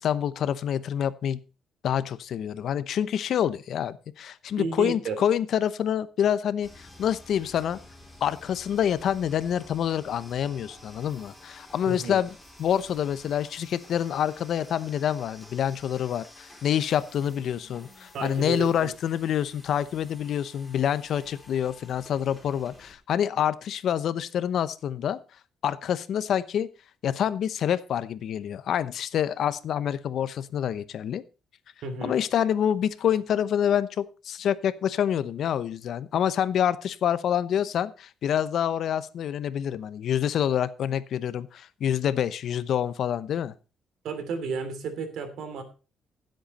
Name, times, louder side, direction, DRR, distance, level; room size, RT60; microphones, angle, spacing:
voice 1, 0.0-1.4 1.8-7.8 8.2-12.3 12.6-25.2 25.6-26.7 27.0-31.2 32.0-43.5, left 9 dB, 70° left, 15 dB, 0.8 m, -27 dB
voice 2, 4.6-5.2 11.9-12.2 18.1-18.9 31.8-32.2 44.0-45.6, right 5 dB, 75° right, 9 dB, 2.9 m, -32 dB
sound 1, 6.6-22.9, left 1 dB, 10° left, 5.5 m, -51 dB
15.5 x 7.9 x 4.2 m, 0.33 s
cardioid pair, 90°, 0 cm